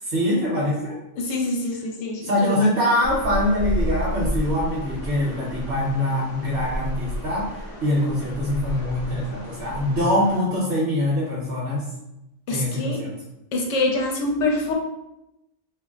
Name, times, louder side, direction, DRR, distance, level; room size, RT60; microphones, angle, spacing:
voice 1, 0.0-1.0 2.2-11.8 12.5-13.1, left 1 dB, 55° right, -6 dB, 1.1 m, -23 dB
voice 2, 1.2-2.5 12.5-13.0 13.5-14.7, left 2 dB, 70° left, 0 dB, 0.9 m, -25 dB
sound 1, 3.0-10.4, equal, 40° left, 0.6 m, -31 dB
2.5 x 2.0 x 3.6 m, 0.88 s
omnidirectional pair, 1.3 m